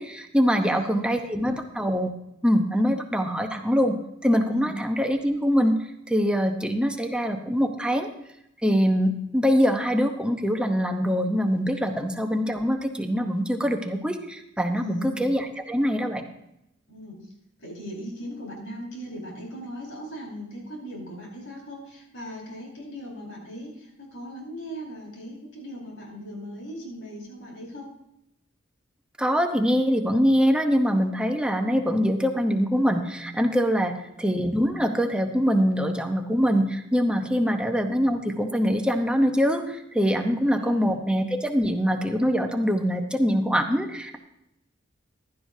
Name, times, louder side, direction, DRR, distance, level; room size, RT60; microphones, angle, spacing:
voice 1, 0.0-2.1 2.4-4.0 4.2-8.1 8.6-16.2 29.2-44.2, equal, 5° right, 4 dB, 0.9 m, -24 dB
voice 2, 0.6-1.2 1.5-1.6 4.5-4.7 14.8-15.2 16.9-17.2 17.6-27.9 33.8-34.1 37.3-37.6 40.3-41.0, equal, 70° left, -2 dB, 4.9 m, -39 dB
15.5 x 12.0 x 2.7 m, 0.82 s
head